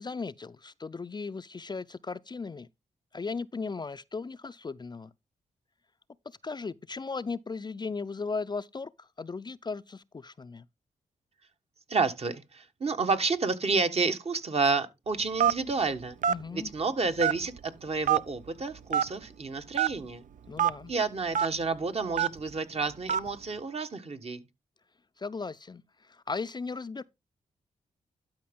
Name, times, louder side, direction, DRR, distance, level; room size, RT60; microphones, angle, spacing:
voice 1, 0.0-2.7 3.1-5.1 6.3-10.7 16.3-16.7 20.5-20.9 25.2-27.0, left 4 dB, 30° left, 0.5 m, -37 dB
voice 2, 11.9-16.2 16.5-20.2 20.9-24.4, right 4 dB, 45° right, 1.3 m, -30 dB
Telephone, 15.4-15.7 16.2-16.4 17.2-17.6 18.1-18.2 18.9-19.1 19.7-19.9 20.6-20.7 21.3-21.5 22.2-22.4 23.1-23.3, right 9 dB, 65° right, 0.5 m, -24 dB
12.0 x 5.0 x 3.6 m
supercardioid pair, 45°, 14 cm